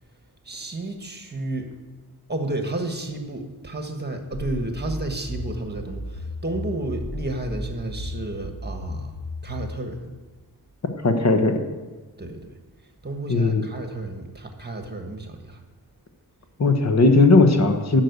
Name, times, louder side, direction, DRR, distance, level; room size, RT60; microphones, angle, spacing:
voice 1, 0.4-1.7 2.3-9.2 9.4-10.1 12.2-12.5 13.0-15.6, right 2 dB, 25° right, 5 dB, 1.5 m, -31 dB
sound 1, 4.3-9.8, left 1 dB, 80° left, 3.1 m, -34 dB
voice 2, 11.0-11.6 13.3-13.6 16.6-18.0, left 3 dB, 45° left, 6 dB, 1.2 m, -17 dB
12.0 x 6.0 x 8.1 m, 1.3 s
wide cardioid pair, 120°, 37 cm